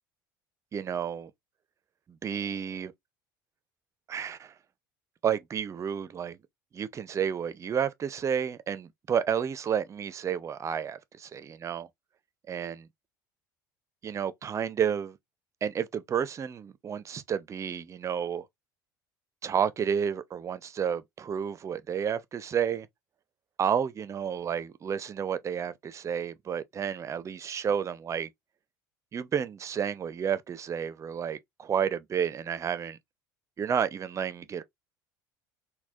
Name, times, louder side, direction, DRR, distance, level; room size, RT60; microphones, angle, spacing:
voice 1, 0.7-1.3 2.2-2.9 4.1-4.5 5.2-6.4 6.7-11.9 12.5-12.9 14.0-15.2 15.6-18.4 19.4-22.9 23.6-28.3 29.1-33.0 33.6-34.6, right 8 dB, 30° right, 0.4 m, -31 dB
4.0 x 2.1 x 2.6 m
figure-of-eight pair, 65°, 11 cm